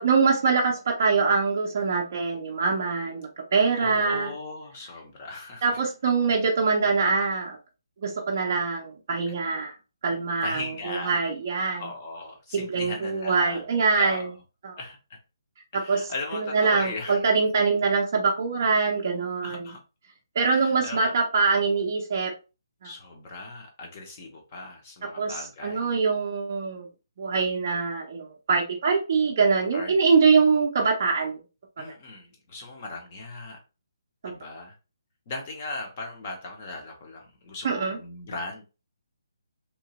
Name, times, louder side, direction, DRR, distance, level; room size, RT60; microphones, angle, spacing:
voice 1, 0.0-4.3 5.6-7.6 8.0-9.7 10.0-11.9 12.5-14.3 14.6-14.8 15.7-19.7 20.4-22.3 22.8-22.9 25.2-26.9 27.2-31.4 31.8-31.9 34.2-34.3 37.6-38.0, right 4 dB, 30° right, 0.4 m, -24 dB
voice 2, 3.5-5.8 10.4-11.2 11.8-13.6 13.9-14.3 14.8-15.0 15.7-17.2 19.4-19.8 20.4-21.6 22.8-25.9 29.7-29.9 31.8-33.6 34.2-34.7 35.3-38.6, left 3 dB, 20° left, 0.5 m, -38 dB
2.8 x 2.2 x 2.8 m
hypercardioid pair, 180°, 2 cm